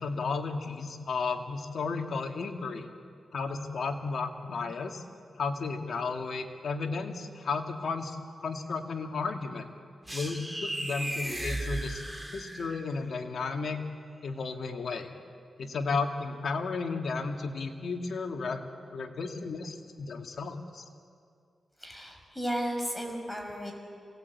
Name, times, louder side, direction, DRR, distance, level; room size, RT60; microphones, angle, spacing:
voice 1, 0.0-2.9 3.3-5.0 5.4-9.7 10.1-12.0 12.3-13.8 14.2-15.1 15.6-20.8, left 4 dB, 70° left, 3 dB, 2.3 m, -33 dB
sound 1, 10.1-12.9, right 1 dB, 5° right, 3.4 m, -35 dB
voice 2, 21.8-23.7, equal, 10° left, 3 dB, 5.4 m, -34 dB
27.0 x 19.0 x 8.4 m, 2.2 s
cardioid pair, 65°, 0 cm